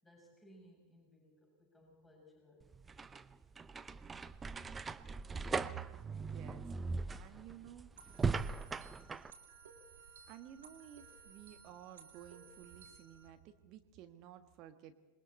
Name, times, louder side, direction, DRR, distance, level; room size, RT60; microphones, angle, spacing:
voice 1, 0.0-2.7, equal, 10° left, -1 dB, 6.7 m, -62 dB
sound 1, 2.6-9.3, right 4 dB, 15° right, 0.7 m, -39 dB
voice 2, 5.6-7.9 10.2-14.9, right 12 dB, 40° right, 7 dB, 1.4 m, -53 dB
sound 2, 8.0-13.3, right 5 dB, 60° right, 3.0 m, -58 dB
27.0 x 22.5 x 4.3 m, 1.2 s
figure-of-eight pair, 90°, 0 cm